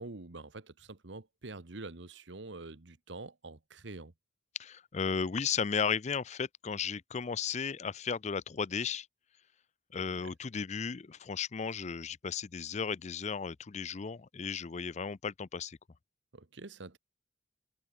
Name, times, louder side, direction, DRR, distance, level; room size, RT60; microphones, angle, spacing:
voice 1, 0.0-4.1 10.0-10.3 16.3-17.0, right 3 dB, 65° right, 1.3 m, -46 dB
voice 2, 4.6-9.1 9.9-15.8, left 6 dB, 35° left, 0.5 m, -35 dB
head